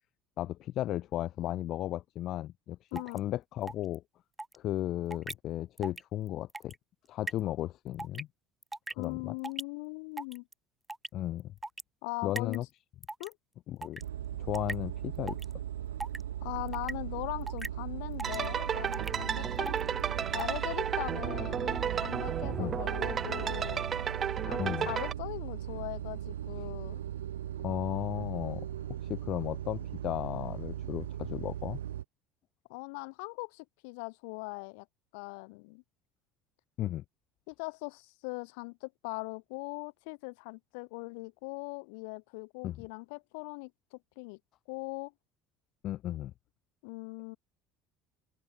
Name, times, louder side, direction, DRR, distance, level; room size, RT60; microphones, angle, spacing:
voice 1, 0.4-4.0 4.5-6.7 7.1-8.3 9.0-9.3 11.1-11.5 12.2-12.7 13.7-14.0 14.4-15.4 22.6-22.8 24.6-24.9 27.6-28.7 29.0-31.8 36.8-37.0 42.6-42.9 45.8-46.3, left 13 dB, 55° left, 1.8 m, -35 dB
sound 1, 3.0-3.2 3.7-3.9 4.4-4.6 5.1-5.3 5.8-6.0 6.3-6.7 7.3-7.4 8.0-8.2 8.6-9.0 9.4-9.6 10.2-10.5 10.9-11.1 11.6-11.8 12.4-12.6 13.0-13.3 13.8-14.0 14.5-14.7 15.3-15.5 16.0-16.2 16.7-16.9 17.5-17.7 18.2-18.5 18.9-19.1 19.7-19.8 20.3-20.5, right 2 dB, 10° right, 2.2 m, -38 dB
voice 2, 9.0-10.5 12.0-12.6 13.2-13.4 16.4-19.8 20.3-23.9 24.4-27.0 32.7-34.9 35.1-35.8 37.5-44.4 44.7-45.1 46.8-47.4, left 32 dB, 70° left, 6.5 m, -40 dB
sound 2, 14.0-32.0, right 11 dB, 85° right, 0.6 m, -38 dB
sound 3, 18.2-25.1, right 7 dB, 40° right, 0.5 m, -33 dB
open air
hypercardioid pair, 70°, 0 cm